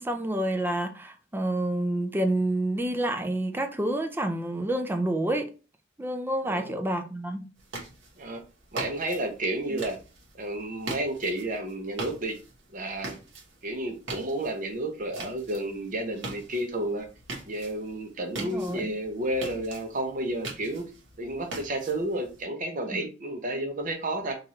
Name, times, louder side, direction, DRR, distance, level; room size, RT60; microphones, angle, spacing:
voice 1, 0.0-5.5 6.0-7.5 9.7-9.8 18.4-18.9 22.9-23.0, right 1 dB, 10° right, 0.4 m, -28 dB
voice 2, 6.4-6.8 8.2-8.4 8.7-10.0 10.3-12.4 12.7-13.2 13.6-17.1 17.5-20.9 21.2-24.4, right 1 dB, 45° right, 0.7 m, -31 dB
sound 1, 7.6-22.4, right 3 dB, 70° right, 1.2 m, -42 dB
4.1 x 2.6 x 3.0 m
head